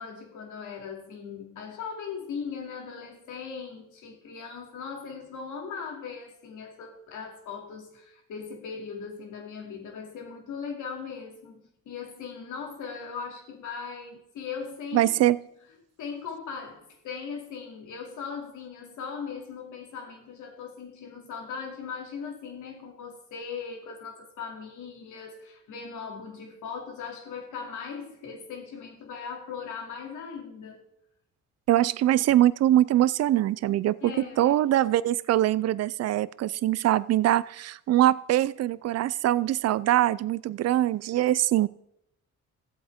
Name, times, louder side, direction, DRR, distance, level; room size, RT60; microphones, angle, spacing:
voice 1, 0.0-15.2 16.0-30.8 34.0-34.5, left 6 dB, 80° left, 1 dB, 2.7 m, -39 dB
voice 2, 14.9-15.4 31.7-41.7, right 13 dB, 55° right, 18 dB, 0.5 m, -23 dB
14.5 x 8.0 x 3.6 m, 0.77 s
cardioid pair, 90°, 30 cm